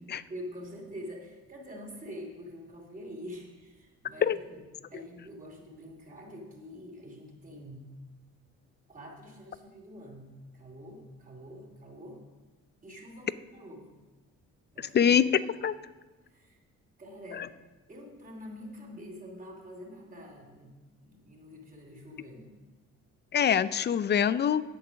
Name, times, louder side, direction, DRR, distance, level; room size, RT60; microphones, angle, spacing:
voice 1, 0.3-7.9 8.9-12.2 12.8-13.9 14.7-15.5 16.2-16.6 17.0-17.5 17.9-22.5, equal, 25° right, 0 dB, 2.7 m, -46 dB
voice 2, 14.9-15.7 23.3-24.6, left 8 dB, 35° left, 16 dB, 0.4 m, -24 dB
8.8 x 8.0 x 6.2 m, 1.2 s
cardioid pair, 90°, 30 cm